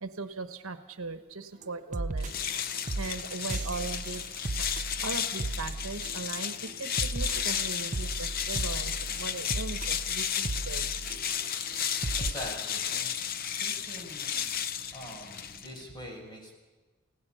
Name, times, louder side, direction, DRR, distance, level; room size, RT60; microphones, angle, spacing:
voice 1, 0.0-2.3 3.0-4.2 5.0-10.9, right 3 dB, 75° right, 9 dB, 1.2 m, -39 dB
sound 1, 1.6-1.7 1.9-2.6 2.9-6.4 6.7-11.5 11.7-11.8 12.0-12.3, right 2 dB, 35° right, 0.6 m, -35 dB
sound 2, 2.2-15.9, left 8 dB, 45° left, 0.7 m, -33 dB
voice 2, 12.2-13.1 13.6-14.5 14.9-16.6, equal, 20° left, 1 dB, 5.4 m, -43 dB
29.0 x 17.0 x 5.6 m, 1.3 s
head